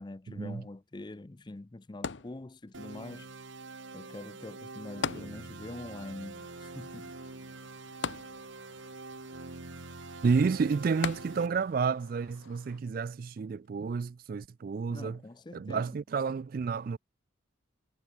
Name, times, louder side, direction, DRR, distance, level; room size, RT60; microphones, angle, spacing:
voice 1, 0.0-3.3 3.9-7.1 14.9-15.9, left 2 dB, 20° left, 0.4 m, -44 dB
sound 1, 2.0-2.9 5.0-5.9 6.2-6.3 8.0-8.9 11.0-11.7 12.4-12.5, left 5 dB, 65° left, 0.7 m, -37 dB
sound 2, 2.7-11.5, right 3 dB, 65° right, 1.4 m, -45 dB
sound 3, 6.4-12.8, left 3 dB, 85° left, 7.4 m, -60 dB
voice 2, 10.2-15.2 15.5-17.0, right 5 dB, 45° right, 0.3 m, -30 dB
head